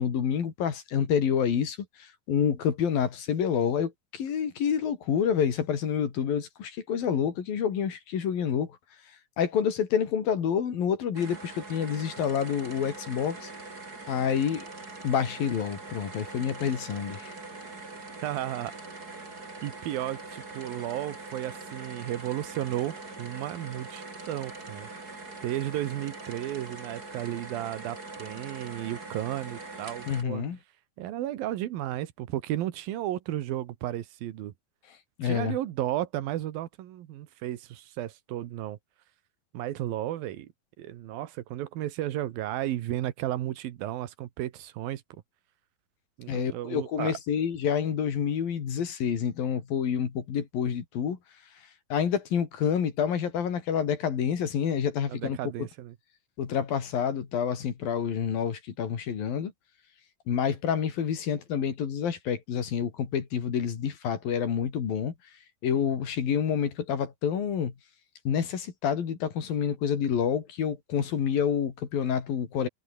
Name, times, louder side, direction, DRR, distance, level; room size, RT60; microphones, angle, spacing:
voice 1, 0.0-8.7 9.4-13.5 14.1-14.7 15.0-17.3 30.1-30.6 35.2-35.6 46.3-51.2 51.9-55.4 56.4-59.5 60.3-65.1 65.6-67.7 68.2-72.7, left 8 dB, 75° left, 4.8 m, -28 dB
sound 1, 11.1-30.2, right 3 dB, 25° right, 5.0 m, -43 dB
voice 2, 18.2-18.7 19.6-24.9 25.4-30.4 31.0-34.5 35.2-38.8 39.5-40.5 40.8-45.0 46.2-47.2 55.1-56.0, right 13 dB, 80° right, 3.1 m, -33 dB
omnidirectional pair, 4.1 m